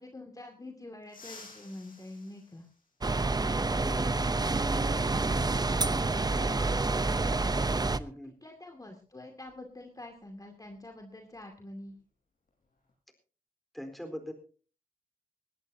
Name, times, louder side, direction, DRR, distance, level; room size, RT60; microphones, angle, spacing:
voice 1, 0.0-2.7 7.1-11.9, left 1 dB, 25° left, 3 dB, 2.4 m, -47 dB
sound 1, 1.0-3.5 5.1-5.2 6.4-6.5 8.2-8.3 8.7-8.9 9.4-11.5 11.8-12.1 12.5-12.9, left 3 dB, 70° left, 6.6 m, -54 dB
sound 2, 3.0-8.0, right 3 dB, 25° right, 0.7 m, -28 dB
voice 2, 3.7-5.5 8.0-8.3 13.7-14.3, equal, ahead, 5 dB, 4.1 m, -43 dB
20.0 x 16.5 x 2.8 m, 0.39 s
wide cardioid pair, 80°, 15 cm